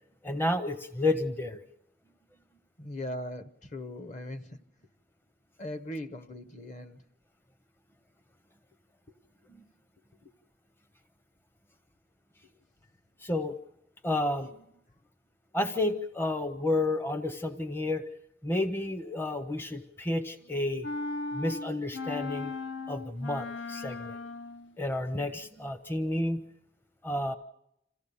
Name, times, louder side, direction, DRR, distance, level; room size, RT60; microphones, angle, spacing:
voice 1, 0.2-1.6 9.5-9.6 13.2-13.6 14.0-14.6 15.5-18.0 18.4-20.9 21.3-22.5 22.9-24.2 24.8-26.4 27.0-27.3, left 2 dB, 15° left, 0.7 m, -31 dB
voice 2, 2.8-4.6 5.6-7.0 10.2-10.3 12.4-12.5, left 1 dB, 45° left, 1.0 m, -39 dB
sound 1, 20.8-24.7, left 3 dB, 80° left, 0.7 m, -37 dB
27.0 x 15.0 x 6.9 m
head